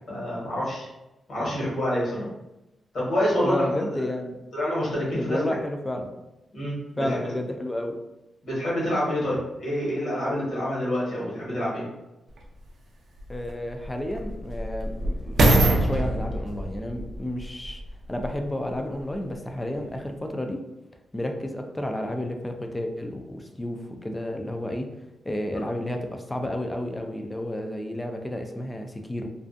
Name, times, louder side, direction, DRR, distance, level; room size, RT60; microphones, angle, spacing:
voice 1, 0.1-0.9 1.3-2.3 2.9-4.0 4.5-5.4 6.5-7.3 8.4-11.8 25.6-25.7, equal, 65° left, -7 dB, 1.3 m, -27 dB
voice 2, 3.4-4.4 5.1-6.2 7.0-8.0 13.3-17.8 18.1-20.6 21.1-24.9 25.2-29.3, left 1 dB, 15° left, 4 dB, 0.3 m, -31 dB
sound 1, 12.4-12.5 13.2-18.5 19.1-19.2, right 1 dB, 70° right, 0.4 m, -25 dB
2.5 x 2.2 x 2.5 m, 0.96 s
cardioid pair, 100°, 0 cm